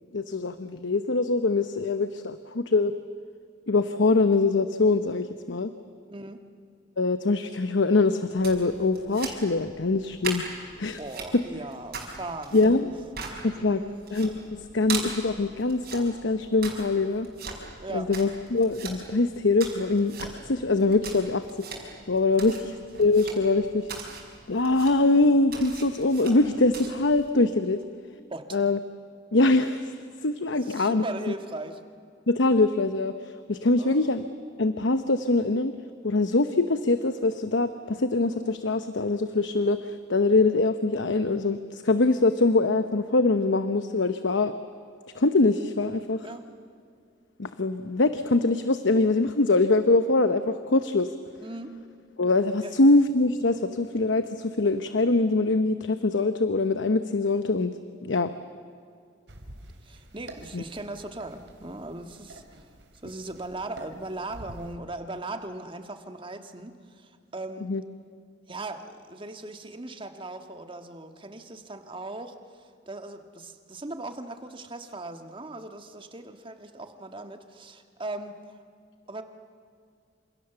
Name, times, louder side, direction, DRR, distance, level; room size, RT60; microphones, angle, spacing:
voice 1, 0.1-2.9 3.7-5.7 7.0-10.4 10.8-11.0 11.3-11.4 12.5-12.9 13.4-13.8 14.1-17.3 17.9-22.5 23.0-23.9 24.5-27.8 28.5-28.8 29.3-29.9 30.2-31.0 32.3-34.2 34.6-35.7 36.0-44.5 45.1-46.3 47.4-51.1 52.2-57.7 58.0-58.3 60.5-60.6 67.6-67.8, left 3 dB, 80° left, 10 dB, 0.9 m, -23 dB
voice 2, 6.1-6.4 11.0-12.9 13.6-14.1 17.8-18.1 28.3-28.6 30.6-31.8 33.8-34.1 46.2-46.4 51.4-51.7 52.6-52.7 59.8-62.7 63.0-67.7 68.5-78.6 79.1-79.2, right 2 dB, 30° right, 7 dB, 1.6 m, -39 dB
sound 1, 8.3-27.3, right 4 dB, 55° right, 5.7 m, -40 dB
sound 2, 59.3-64.8, right 1 dB, 70° right, 3.2 m, -47 dB
28.0 x 27.0 x 7.0 m, 2.3 s
head